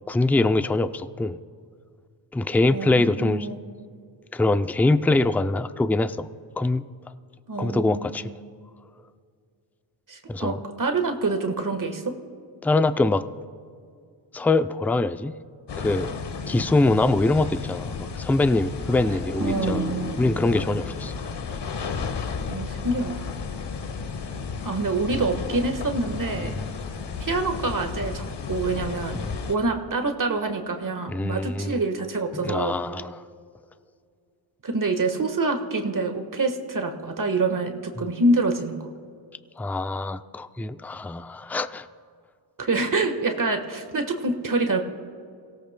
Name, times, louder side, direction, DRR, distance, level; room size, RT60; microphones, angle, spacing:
voice 1, 0.1-1.4 2.3-3.5 4.3-6.3 6.6-6.8 7.6-8.3 10.3-10.6 12.6-13.2 14.3-15.4 15.8-16.1 16.5-19.8 20.2-21.1 26.4-26.5 29.2-29.4 31.1-31.8 32.3-33.2 38.0-38.1 39.6-41.9, left 2 dB, 5° left, 11 dB, 0.3 m, -23 dB
voice 2, 2.7-3.6 7.5-8.3 10.1-12.1 19.4-20.1 22.5-23.3 24.6-26.5 27.2-29.2 29.5-32.7 34.6-38.8 42.6-44.8, right 3 dB, 40° right, 5 dB, 1.4 m, -26 dB
sound 1, 15.7-29.5, left 5 dB, 60° left, 1.1 m, -33 dB
sound 2, 18.5-21.7 22.0-22.4, left 1 dB, 35° left, 4.8 m, -35 dB
28.5 x 17.0 x 2.2 m, 2.2 s
wide cardioid pair, 85°, 47 cm